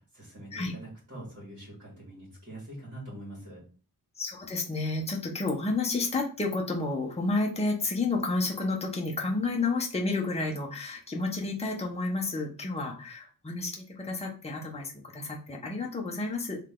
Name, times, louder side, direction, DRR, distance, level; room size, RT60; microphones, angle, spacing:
voice 1, 0.0-3.6, right 1 dB, 40° right, -5 dB, 2.3 m, -44 dB
voice 2, 4.2-16.6, left 3 dB, 15° left, -1 dB, 0.8 m, -31 dB
4.0 x 3.3 x 3.7 m, 0.39 s
wide cardioid pair, 155°, 38 cm